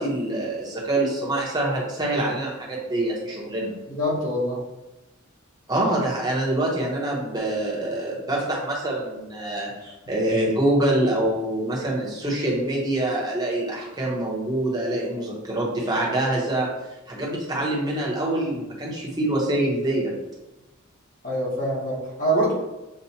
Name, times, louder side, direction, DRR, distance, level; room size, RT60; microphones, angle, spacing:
voice 1, 0.0-3.7 5.7-16.7 17.1-20.1, right 1 dB, 20° right, -4 dB, 1.1 m, -25 dB
voice 2, 3.9-4.6 21.2-22.5, right 1 dB, 40° left, -5 dB, 1.3 m, -24 dB
7.1 x 2.4 x 2.8 m, 1.0 s
head